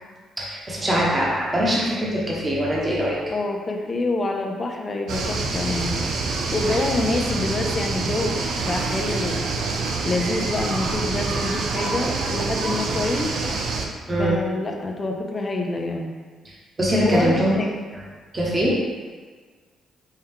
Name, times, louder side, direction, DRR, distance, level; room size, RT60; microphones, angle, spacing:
voice 1, 0.4-3.2 14.1-14.4 16.8-17.5 17.9-18.0 18.3-18.9, equal, 20° right, -5 dB, 1.0 m, -22 dB
voice 2, 3.3-6.0 6.5-9.5 10.0-13.3 14.2-16.1 17.0-17.7, left 2 dB, 35° left, 2 dB, 0.5 m, -26 dB
sound 1, 5.1-13.9, right 3 dB, 70° right, 0.5 m, -26 dB
4.4 x 2.3 x 3.6 m, 1.5 s
cardioid pair, 90°, 0 cm